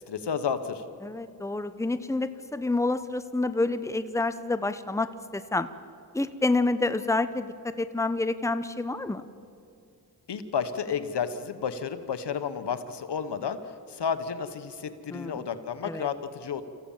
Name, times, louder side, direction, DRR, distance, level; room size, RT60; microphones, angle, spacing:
voice 1, 0.1-0.8 10.3-13.6 13.9-16.6, left 7 dB, 80° left, 10 dB, 1.2 m, -31 dB
voice 2, 1.0-5.1 5.3-5.7 6.1-9.2 15.1-15.4 15.9-16.1, left 2 dB, 5° left, 11 dB, 0.9 m, -28 dB
25.5 x 15.0 x 7.3 m, 2.5 s
cardioid pair, 50°, 41 cm